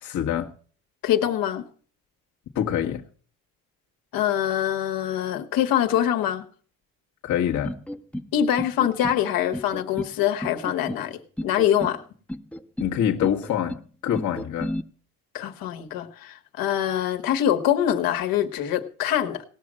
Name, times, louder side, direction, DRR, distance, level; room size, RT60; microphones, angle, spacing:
voice 1, 0.0-0.5 2.5-3.0 7.2-7.7 12.8-14.7, left 9 dB, 55° left, 1.5 m, -25 dB
voice 2, 1.0-1.7 4.1-6.4 8.3-12.0 15.3-19.4, left 10 dB, 75° left, 1.7 m, -24 dB
sound 1, 7.6-8.3 8.6-9.2 9.5-10.1 10.4-11.0 11.4-12.0 12.3-12.9 13.2-13.8 14.1-14.8, left 1 dB, 5° left, 0.8 m, -32 dB
18.5 x 6.3 x 7.5 m
cardioid pair, 95°, 35 cm